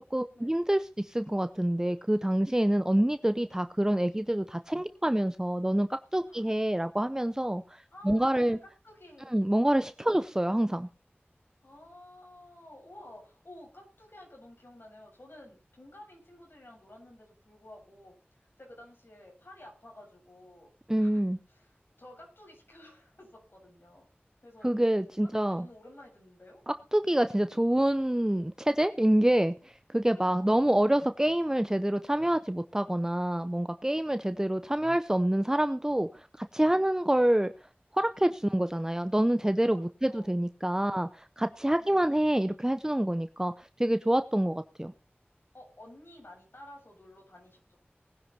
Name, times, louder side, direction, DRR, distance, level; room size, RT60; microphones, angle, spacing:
voice 1, 0.1-8.6 9.3-10.9 20.9-21.4 24.6-25.7 26.7-37.5 37.9-44.9, right 1 dB, 15° right, 10 dB, 0.6 m, -27 dB
voice 2, 7.9-9.4 11.6-20.7 21.0-21.2 21.5-24.1 24.4-24.7 25.2-26.6 30.1-30.9 40.1-40.3 41.8-42.0 45.5-47.8, left 1 dB, 70° left, 0 dB, 7.6 m, -52 dB
19.0 x 10.5 x 4.2 m, 0.34 s
wide cardioid pair, 50°, 4 cm